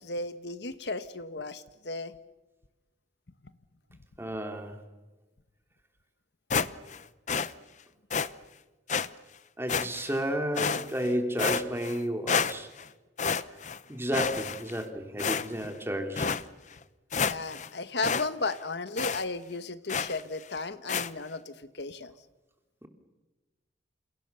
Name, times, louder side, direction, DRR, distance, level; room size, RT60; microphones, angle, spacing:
voice 1, 0.0-2.1 17.1-22.1, left 3 dB, 60° left, 12 dB, 1.2 m, -35 dB
voice 2, 4.2-4.8 9.6-12.7 13.9-16.3 22.8-22.9, equal, 15° right, 5 dB, 3.1 m, -32 dB
sound 1, 6.5-7.0 7.3-7.5 8.1-8.3 8.9-9.1 9.7-10.2 10.6-11.1 11.4-12.0 12.3-12.8 13.2-13.8 14.1-14.8 15.2-15.7 16.2-16.4 16.8-16.9 17.1-17.7 18.0-18.3 18.5-18.6 19.0-19.2 19.9-20.2 20.9-21.1, left 5 dB, 40° left, 0.8 m, -29 dB
29.5 x 29.0 x 6.9 m, 1.1 s
head